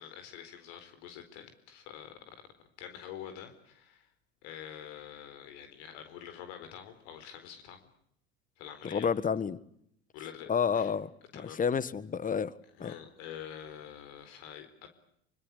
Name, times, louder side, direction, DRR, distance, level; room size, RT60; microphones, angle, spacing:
voice 1, 0.0-4.1 4.4-7.8 8.6-9.1 10.1-10.9 11.3-11.6 12.8-14.9, left 9 dB, 70° left, 4.4 m, -46 dB
voice 2, 8.8-9.6 10.5-12.5 12.8-12.9, left 6 dB, 25° left, 1.6 m, -30 dB
25.5 x 24.5 x 8.4 m
hypercardioid pair, 85°, 32 cm